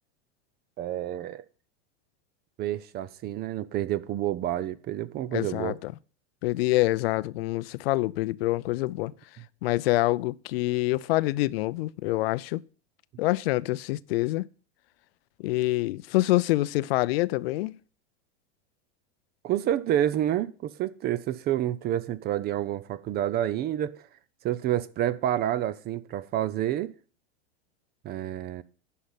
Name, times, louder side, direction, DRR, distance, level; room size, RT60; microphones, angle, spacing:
voice 1, 0.8-1.4 2.6-5.8 19.4-24.1 24.4-26.9 28.0-28.6, right 12 dB, 30° right, 0.6 m, -29 dB
voice 2, 5.3-5.9 6.4-9.1 9.6-12.6 13.2-14.5 15.4-17.8, left 19 dB, 60° left, 0.6 m, -26 dB
10.0 x 5.6 x 8.2 m
supercardioid pair, 130°, 33 cm